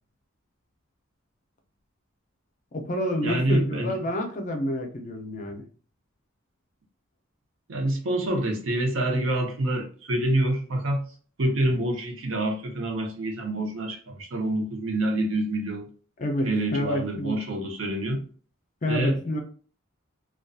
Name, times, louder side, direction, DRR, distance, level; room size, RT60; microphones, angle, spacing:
voice 1, 2.7-5.6 16.2-17.3 18.8-19.4, left 1 dB, 35° left, 0.5 m, -29 dB
voice 2, 3.2-3.9 7.7-11.1 11.4-15.9 16.4-18.2 18.9-19.4, right 1 dB, 70° right, 0.7 m, -27 dB
2.5 x 2.3 x 2.3 m
head